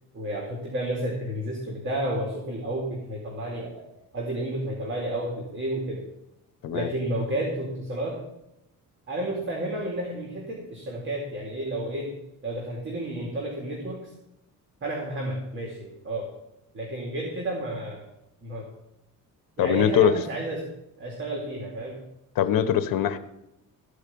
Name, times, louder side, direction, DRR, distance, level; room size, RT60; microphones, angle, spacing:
voice 1, 0.1-3.9 4.1-6.1 6.7-8.2 9.1-12.2 12.4-14.1 14.8-16.3 16.7-18.0 18.4-18.6 19.6-20.7 21.0-22.0, right 1 dB, 35° right, -1 dB, 2.6 m, -31 dB
voice 2, 19.6-20.1 22.4-23.2, left 9 dB, 75° left, 12 dB, 1.1 m, -22 dB
14.5 x 5.0 x 8.4 m, 0.87 s
cardioid pair, 125°, 34 cm